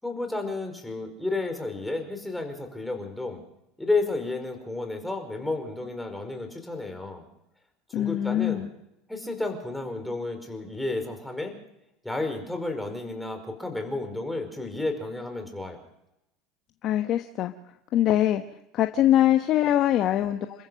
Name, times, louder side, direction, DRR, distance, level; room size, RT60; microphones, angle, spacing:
voice 1, 0.0-3.4 3.8-7.2 7.9-8.6 9.1-11.5 12.0-15.8, left 2 dB, 5° left, 4 dB, 5.0 m, -31 dB
voice 2, 7.9-8.7 16.8-17.5 17.9-18.4 18.7-20.7, left 12 dB, 50° left, 6 dB, 1.2 m, -23 dB
28.5 x 14.5 x 6.5 m, 0.84 s
supercardioid pair, 105°, 0 cm